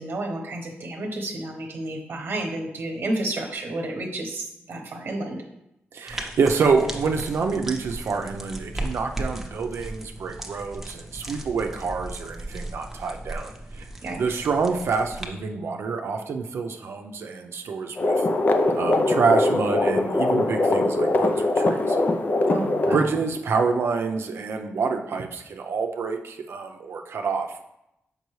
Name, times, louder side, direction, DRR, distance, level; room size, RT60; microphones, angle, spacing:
voice 1, 0.0-5.4 14.0-14.4 22.5-23.1, right 1 dB, 50° right, 1 dB, 1.0 m, -31 dB
voice 2, 5.9-13.9 14.2-18.2 18.7-22.0 22.9-27.6, right 5 dB, 70° right, 3 dB, 0.6 m, -27 dB
sound 1, 6.1-15.3, right 1 dB, 5° right, 0.8 m, -36 dB
sound 2, 18.0-23.0, left 2 dB, 45° left, 0.6 m, -22 dB
6.7 x 5.2 x 3.1 m, 0.83 s
cardioid pair, 100°, 4 cm